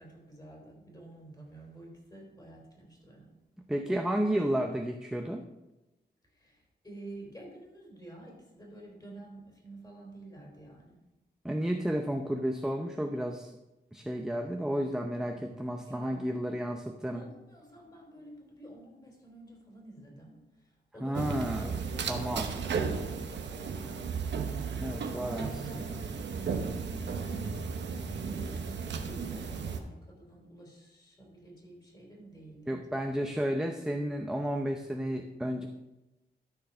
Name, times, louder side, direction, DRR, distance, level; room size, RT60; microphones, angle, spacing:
voice 1, 0.0-3.3 6.3-11.0 15.1-16.4 17.1-24.0 24.4-27.8 28.3-33.3, right 1 dB, 20° left, -2 dB, 3.5 m, -50 dB
voice 2, 3.7-5.4 11.4-13.5 13.9-17.2 21.0-21.8 22.1-22.5 24.8-25.9 32.7-35.7, equal, 5° right, 4 dB, 0.5 m, -32 dB
sound 1, 21.1-29.8, right 5 dB, 90° right, 0.9 m, -35 dB
12.5 x 4.6 x 5.5 m, 1.0 s
wide cardioid pair, 115°, 18 cm